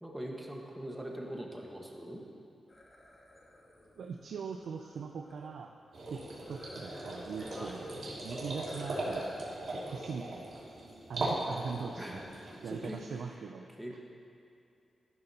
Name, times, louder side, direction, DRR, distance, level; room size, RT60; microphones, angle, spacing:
voice 1, 0.0-2.2 7.5-7.8 12.0-12.2 12.6-13.0 13.8-14.0, right 1 dB, 5° right, -1 dB, 1.5 m, -42 dB
sound 1, 2.7-5.5 6.4-7.7 8.0-8.1 8.7-9.4, left 1 dB, 30° left, 1.7 m, -55 dB
voice 2, 4.0-5.7 6.1-9.4 9.7-10.5 11.1-14.0, right 5 dB, 85° right, 3 dB, 0.5 m, -41 dB
sound 2, 5.9-13.0, right 1 dB, 65° right, 2.5 m, -39 dB
13.5 x 12.0 x 2.9 m, 2.6 s
wide cardioid pair, 105°, 0 cm